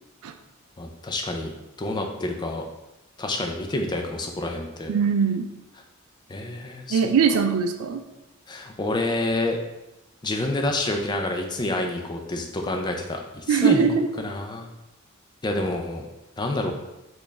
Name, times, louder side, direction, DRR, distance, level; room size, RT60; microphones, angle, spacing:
voice 1, 0.8-1.5 1.8-2.6 3.2-4.9 6.3-7.0 7.3-7.4 8.5-9.6 10.2-13.9 14.2-14.7 15.4-16.0 16.4-16.7, left 2 dB, 20° left, 2 dB, 0.4 m, -28 dB
voice 2, 4.9-5.5 6.9-8.0 13.5-14.1, right 6 dB, 80° right, 8 dB, 0.3 m, -21 dB
4.1 x 2.3 x 3.2 m, 0.95 s
head